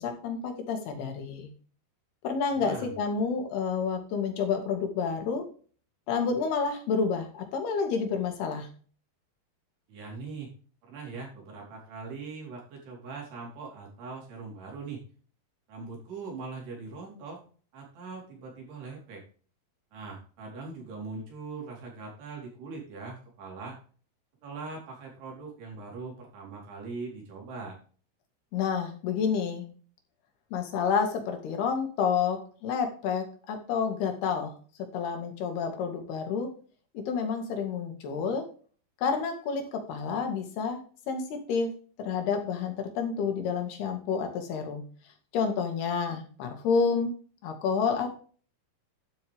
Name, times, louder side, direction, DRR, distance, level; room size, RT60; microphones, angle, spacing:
voice 1, 0.0-1.5 2.2-5.4 6.1-8.7 28.5-29.6 30.5-34.5 34.8-36.5 36.9-38.5 39.0-40.8 41.1-41.7 42.0-44.8 45.3-47.1 47.4-48.1, left 5 dB, 80° left, 5 dB, 4.0 m, -29 dB
voice 2, 2.5-2.9 9.9-10.5 10.9-15.0 15.7-17.4 17.7-19.2 19.9-23.8 24.4-27.8, right 4 dB, 90° right, -2 dB, 6.2 m, -41 dB
12.0 x 8.0 x 3.5 m, 0.41 s
omnidirectional pair, 4.5 m